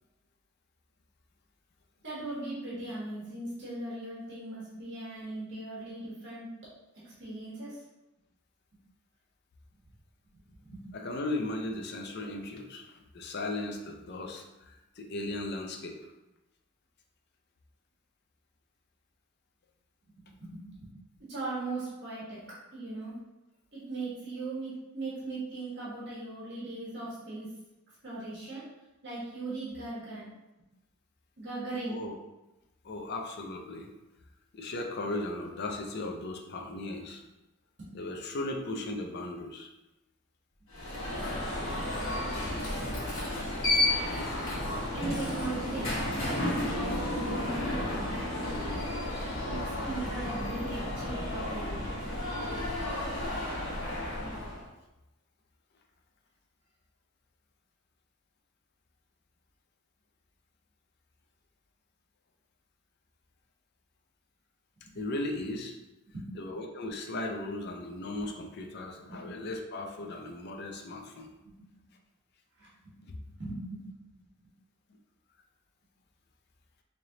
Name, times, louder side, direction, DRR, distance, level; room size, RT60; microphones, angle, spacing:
voice 1, 2.0-6.5 7.0-7.8 10.6-10.9 20.2-20.9 21.3-22.4 22.7-23.1 23.7-27.5 28.0-28.7 29.0-30.3 31.4-32.0 37.8-37.9 44.9-48.8 49.4-51.9 52.5-52.7 64.8-65.0 66.1-66.3 69.1-69.2 72.6-72.9 73.2-74.0, right 2 dB, 55° right, -8 dB, 1.3 m, -39 dB
voice 2, 10.9-16.0 31.9-32.2 32.8-33.9 34.5-37.2 37.9-39.7 64.9-65.7 66.3-71.3 73.1-73.2, left 2 dB, 50° left, 2 dB, 0.5 m, -37 dB
Alarm, 40.7-54.6, left 1 dB, 70° left, 1.3 m, -32 dB
3.8 x 3.3 x 2.8 m, 0.98 s
head